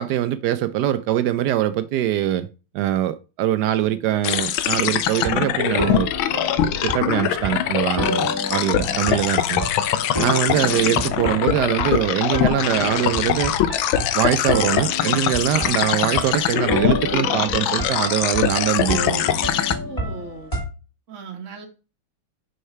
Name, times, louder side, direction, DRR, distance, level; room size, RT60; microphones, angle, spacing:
voice 1, 0.0-2.5 2.7-6.1 6.8-9.7 10.2-13.5 14.0-19.3, right 12 dB, 90° right, 0.9 m, -23 dB
sound 1, 4.2-19.7, left 10 dB, 75° left, 1.5 m, -23 dB
sound 2, 5.1-20.6, left 1 dB, 15° left, 3.4 m, -30 dB
voice 2, 10.5-11.0 19.8-20.5 21.1-21.7, right 5 dB, 40° right, 1.6 m, -38 dB
6.5 x 5.5 x 5.6 m
omnidirectional pair, 2.3 m